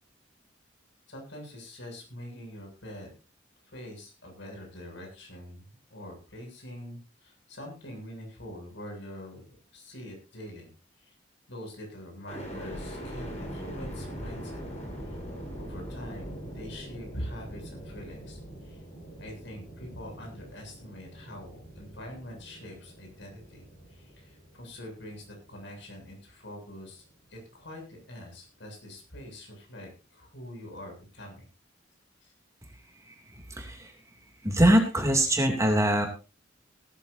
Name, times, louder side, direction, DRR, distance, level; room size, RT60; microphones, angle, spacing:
voice 1, 1.1-3.1 3.7-5.6 5.9-9.4 9.7-10.7 11.5-14.6 15.6-18.4 18.7-18.8 19.2-23.6 23.9-27.0 27.3-31.5, equal, 65° left, 2 dB, 7.6 m, -44 dB
sound 1, 12.2-26.3 26.8-27.5, equal, 35° left, 6.4 m, -42 dB
voice 2, 34.4-36.1, right 1 dB, 15° right, 3 dB, 2.7 m, -22 dB
18.5 x 14.0 x 2.7 m, 0.31 s
head